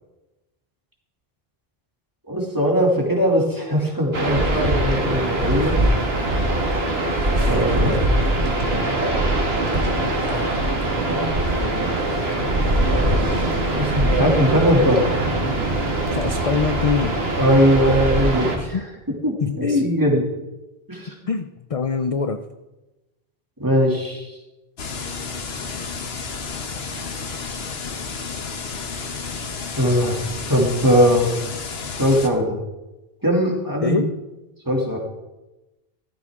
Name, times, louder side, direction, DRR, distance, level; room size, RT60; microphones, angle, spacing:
voice 1, 2.3-5.8 7.4-8.0 10.0-10.4 13.8-15.1 17.4-18.8 19.2-20.3 20.9-21.2 23.6-24.4 29.8-30.2 30.5-31.4 32.0-32.6 33.2-34.0 34.6-35.0, equal, 20° right, -2 dB, 2.7 m, -20 dB
sound 1, 4.1-18.6, right 1 dB, 75° right, 2.1 m, -22 dB
voice 2, 16.1-17.2 18.6-18.9 19.4-19.9 21.3-22.4 33.8-34.1, left 5 dB, 40° left, 9 dB, 0.6 m, -24 dB
sound 2, 24.8-32.3, left 5 dB, 80° left, 1.4 m, -31 dB
15.0 x 13.0 x 3.7 m, 1.0 s
omnidirectional pair, 1.0 m